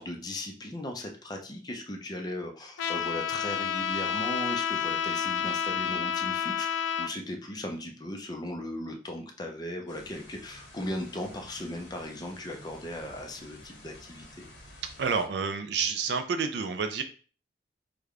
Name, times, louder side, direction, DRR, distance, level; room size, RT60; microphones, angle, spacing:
voice 1, 0.0-14.5, left 1 dB, 20° left, 3 dB, 0.5 m, -37 dB
Trumpet, 2.8-7.1, left 8 dB, 85° left, 0.4 m, -30 dB
sound 1, 9.9-15.3, left 1 dB, 65° left, 0.9 m, -51 dB
voice 2, 15.0-17.0, right 5 dB, 65° right, 7 dB, 0.3 m, -29 dB
3.3 x 2.2 x 3.5 m, 0.40 s
head